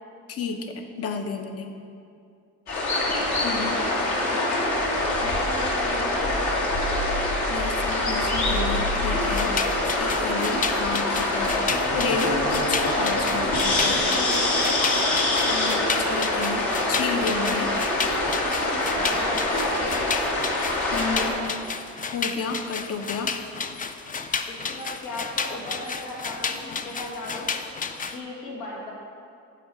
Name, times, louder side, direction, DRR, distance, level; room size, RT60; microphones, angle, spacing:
voice 1, 0.3-1.8 3.4-3.8 7.5-9.5 9.8-11.5 12.0-14.0 15.5-17.7 20.9-21.4 22.1-23.4, left 5 dB, 50° left, 6 dB, 0.8 m, -31 dB
sound 1, 2.7-21.3, left 1 dB, 70° left, 1.5 m, -24 dB
voice 2, 2.8-3.2 3.9-4.6 5.2-6.9 12.3-12.5 13.8-14.6 18.9-20.1 24.5-27.5 28.0-28.9, left 2 dB, 90° left, -4 dB, 1.8 m, -36 dB
sound 2, 9.2-28.2, left 5 dB, 30° left, 0.4 m, -32 dB
6.8 x 4.6 x 6.0 m, 2.4 s
cardioid pair, 90°, 30 cm